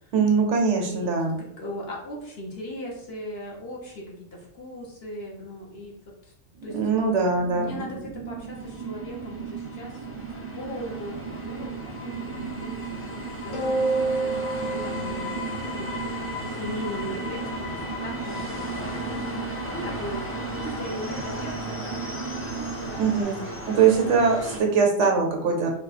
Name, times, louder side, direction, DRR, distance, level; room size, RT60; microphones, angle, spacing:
voice 1, 0.1-1.4 6.7-7.7 23.0-23.4 23.7-25.7, right 5 dB, 65° right, 2 dB, 1.0 m, -22 dB
voice 2, 0.9-6.0 6.2-6.3 6.6-6.8 7.5-10.1 10.5-15.5 15.8-20.2 20.5-22.0 22.4-23.8, equal, 55° left, -3 dB, 1.1 m, -39 dB
sound 1, 6.5-23.2, right 7 dB, 40° right, 0.4 m, -37 dB
sound 2, 8.5-24.6, left 1 dB, 15° left, 0.6 m, -36 dB
sound 3, 13.5-16.1, right 3 dB, 75° left, 1.2 m, -28 dB
3.4 x 2.3 x 4.1 m, 0.72 s
omnidirectional pair, 1.3 m